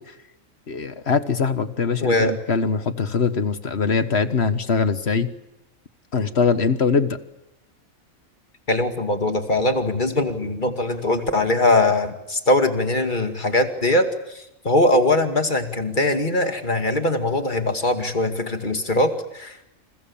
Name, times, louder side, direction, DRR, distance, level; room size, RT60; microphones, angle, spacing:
voice 1, 0.7-5.3 6.1-7.2, left 5 dB, 50° left, 11 dB, 1.6 m, -22 dB
voice 2, 2.0-2.4 8.7-19.7, left 2 dB, 35° left, 6 dB, 2.5 m, -21 dB
29.0 x 28.0 x 7.3 m, 0.87 s
omnidirectional pair, 1.4 m